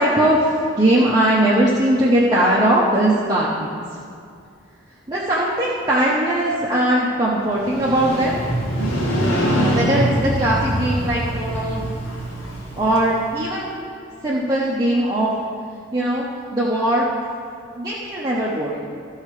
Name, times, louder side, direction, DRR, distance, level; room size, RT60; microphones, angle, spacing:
voice 1, 0.0-3.8 5.1-8.3 9.6-11.8 12.7-13.8 14.2-15.3 15.9-17.1 17.7-18.8, right 1 dB, 20° right, -7 dB, 0.9 m, -20 dB
Motorcycle, 7.5-13.4, right 1 dB, 65° left, 2.1 m, -23 dB
13.5 x 5.6 x 4.9 m, 2.4 s
head